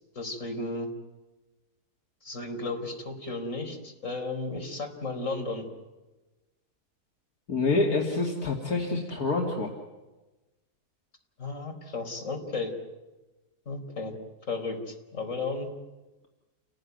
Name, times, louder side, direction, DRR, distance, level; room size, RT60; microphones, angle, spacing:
voice 1, 0.1-0.9 2.2-5.7 11.4-12.7 13.7-14.1 14.5-15.7, left 3 dB, 55° left, 4 dB, 4.6 m, -34 dB
voice 2, 7.5-9.7, left 3 dB, 70° left, -1 dB, 3.2 m, -27 dB
29.5 x 18.5 x 9.4 m, 1.1 s
omnidirectional pair, 1.6 m